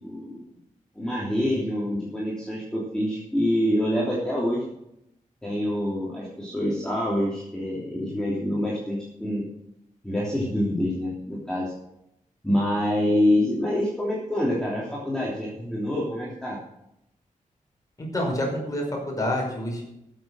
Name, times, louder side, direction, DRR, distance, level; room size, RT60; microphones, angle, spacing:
voice 1, 0.0-0.4 0.9-4.7 5.4-9.4 10.0-11.7 12.4-16.6, left 1 dB, 5° left, -6 dB, 3.2 m, -26 dB
voice 2, 18.0-19.8, left 1 dB, 25° left, -1 dB, 5.1 m, -28 dB
13.0 x 7.9 x 6.4 m, 0.81 s
wide cardioid pair, 110°, 14 cm